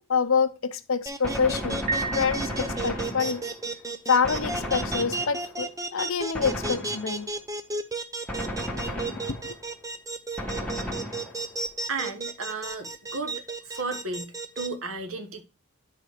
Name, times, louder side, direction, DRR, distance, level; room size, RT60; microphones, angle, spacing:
voice 1, 0.1-1.8 2.1-3.4 4.1-7.3 9.3-9.6, left 5 dB, 65° left, 0.6 m, -26 dB
sound 1, 1.1-14.7, right 2 dB, 15° right, 0.6 m, -33 dB
Gunshot gunfire, 1.2-3.7 4.2-5.7 6.3-7.4 8.3-9.7 10.4-11.6, equal, 5° left, 1.3 m, -34 dB
Piano, 1.9-3.3, right 4 dB, 35° right, 1.3 m, -33 dB
voice 2, 11.9-13.4 13.6-15.4, right 3 dB, 70° right, 1.2 m, -34 dB
9.9 x 4.4 x 4.9 m
head